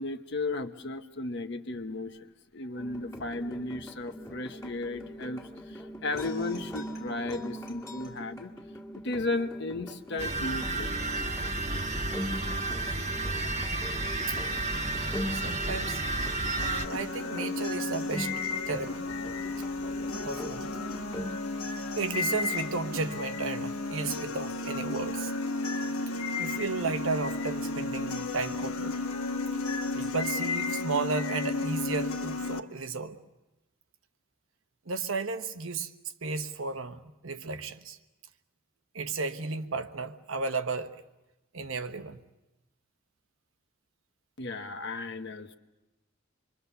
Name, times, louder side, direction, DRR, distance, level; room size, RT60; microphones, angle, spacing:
voice 1, 0.0-2.3 2.5-8.5 9.0-11.1 44.4-45.5, left 2 dB, 55° left, 1.2 m, -35 dB
sound 1, 2.8-21.4, equal, 15° left, 2.1 m, -41 dB
sound 2, 10.2-16.9, right 2 dB, 30° right, 1.3 m, -31 dB
voice 2, 15.0-16.0 16.9-18.3 18.7-19.1 20.2-20.7 22.0-25.3 26.4-28.9 29.9-33.2 34.9-35.9 36.2-38.0 38.9-41.0 41.5-42.2, right 4 dB, 70° right, 1.1 m, -33 dB
sound 3, 16.6-32.6, left 3 dB, 85° left, 1.1 m, -33 dB
26.0 x 23.5 x 6.9 m
head